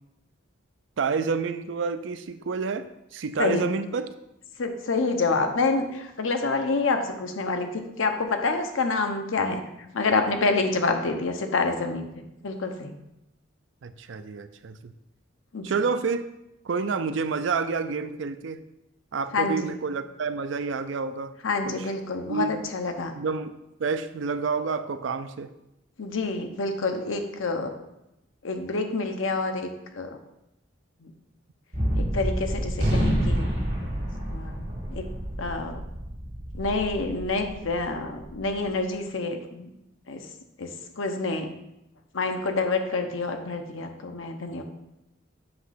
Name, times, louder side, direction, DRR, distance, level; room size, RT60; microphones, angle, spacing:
voice 1, 1.0-4.1 13.8-14.9 15.6-16.3 16.6-18.6 19.1-21.3 21.7-21.8 22.3-22.6 23.2-23.5 23.8-25.5, right 5 dB, 65° right, 11 dB, 0.4 m, -29 dB
voice 2, 4.6-9.6 9.9-12.9 15.5-15.8 19.3-19.8 21.4-23.1 26.0-27.7 28.4-30.2 31.0-31.1 32.0-33.5 34.3-35.0 35.4-35.8 36.5-39.7 40.1-40.2 40.6-41.5 42.1-44.6, left 3 dB, 80° left, 5 dB, 0.8 m, -27 dB
Gunshot gunfire, 31.7-38.3, equal, 45° right, 2.5 m, -28 dB
7.8 x 3.1 x 5.7 m, 0.87 s
head